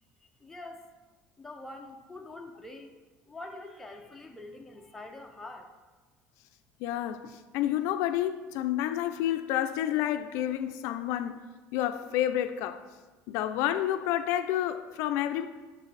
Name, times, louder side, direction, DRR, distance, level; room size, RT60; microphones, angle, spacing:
voice 1, 0.4-0.9 1.4-2.9 3.3-5.7, left 2 dB, 5° left, 0.5 m, -45 dB
voice 2, 6.8-11.4 11.7-12.8 13.3-15.5, left 12 dB, 65° left, 0.4 m, -29 dB
9.0 x 6.7 x 3.2 m
cardioid pair, 170°, 5 cm